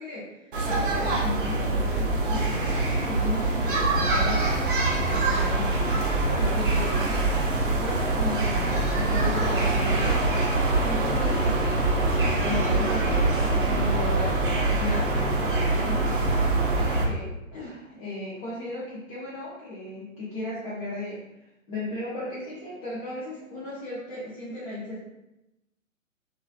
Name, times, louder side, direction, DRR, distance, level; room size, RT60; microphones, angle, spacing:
voice 1, 0.0-4.5 5.0-10.3 10.8-16.0 16.7-21.2 21.7-25.0, left 2 dB, 25° left, -10 dB, 0.6 m, -36 dB
sound 1, 0.5-17.1, right 2 dB, 40° right, 0.6 m, -24 dB
3.0 x 2.5 x 2.4 m, 0.92 s
figure-of-eight pair, 120°, 41 cm